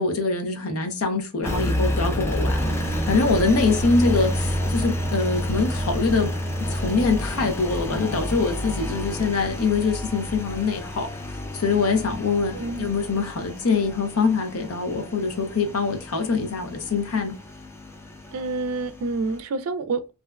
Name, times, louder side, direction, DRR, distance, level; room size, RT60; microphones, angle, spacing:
voice 1, 0.0-2.8 3.1-6.3 6.7-11.1 11.5-17.4, left 4 dB, 75° left, 0.6 m, -24 dB
Engine, 1.4-19.4, equal, 10° left, 0.3 m, -29 dB
voice 2, 12.5-12.9 18.3-20.1, right 3 dB, 70° right, 0.4 m, -28 dB
2.5 x 2.1 x 2.3 m
head